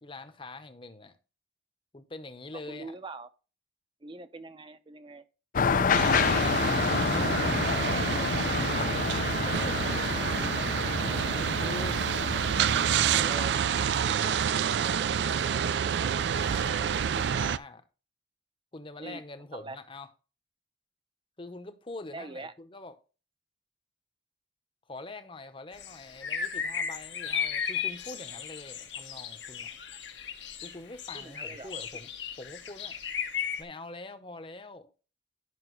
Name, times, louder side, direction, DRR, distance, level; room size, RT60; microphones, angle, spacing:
voice 1, 0.0-1.2 1.9-2.9 6.6-10.0 10.3-10.6 11.6-12.0 13.1-14.4 14.8-17.8 18.7-20.1 21.4-22.9 24.9-29.7 30.6-32.1 32.4-33.0 33.6-34.9, left 2 dB, 30° left, 0.9 m, -44 dB
voice 2, 2.7-3.3 4.0-5.2 13.3-13.5 19.0-19.2 19.5-19.8 22.1-22.5 31.1-31.7, right 2 dB, 30° right, 0.7 m, -43 dB
sound 1, 5.5-13.4, left 5 dB, 50° left, 0.5 m, -29 dB
sound 2, 5.9-17.6, right 8 dB, 70° right, 0.4 m, -28 dB
sound 3, 25.8-33.6, left 7 dB, 85° left, 1.4 m, -35 dB
11.0 x 5.8 x 3.1 m
head